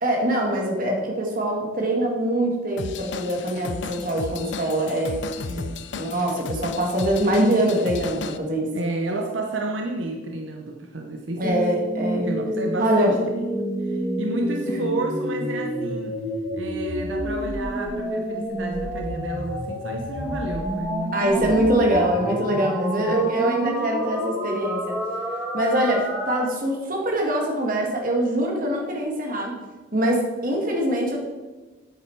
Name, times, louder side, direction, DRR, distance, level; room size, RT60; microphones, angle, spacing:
voice 1, 0.0-5.2 5.9-8.7 11.4-12.3 12.8-13.1 21.1-25.0 25.3-29.6 29.9-31.2, right 1 dB, 45° right, 0 dB, 2.0 m, -23 dB
Drum kit / Drum, 2.8-8.4, left 5 dB, 70° left, 0.5 m, -34 dB
voice 2, 5.5-5.9 8.7-11.7 12.2-16.2 16.5-21.6 23.1-23.3, right 2 dB, 80° right, 2 dB, 0.9 m, -31 dB
sound 1, 11.4-26.4, equal, ahead, 1.5 m, -29 dB
8.2 x 8.0 x 4.7 m, 1.2 s
head